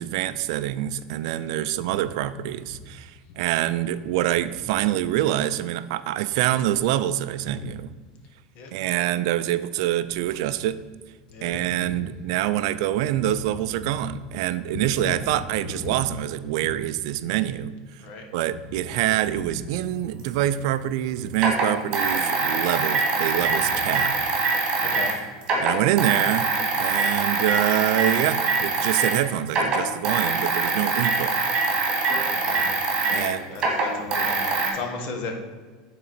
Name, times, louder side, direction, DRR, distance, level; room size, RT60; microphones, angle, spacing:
voice 1, 0.0-7.9 8.7-10.8 11.4-18.0 18.3-24.2 25.6-26.5 26.8-31.3 33.1-33.5, right 13 dB, 70° right, 13 dB, 0.3 m, -25 dB
voice 2, 11.3-12.1 14.7-15.4 15.7-16.0 16.6-16.7 18.0-18.3 18.9-19.0 19.3-19.5 21.2-21.3 23.5-23.6 24.0-24.1 24.8-25.2 32.4-32.7 33.0-35.3, left 3 dB, 50° left, 3 dB, 1.2 m, -35 dB
sound 1, 20.2-20.3 21.3-25.2 25.4-29.2 29.5-34.7, right 3 dB, 30° right, 1.9 m, -24 dB
9.2 x 4.1 x 4.3 m, 1.5 s
supercardioid pair, 145°, 3 cm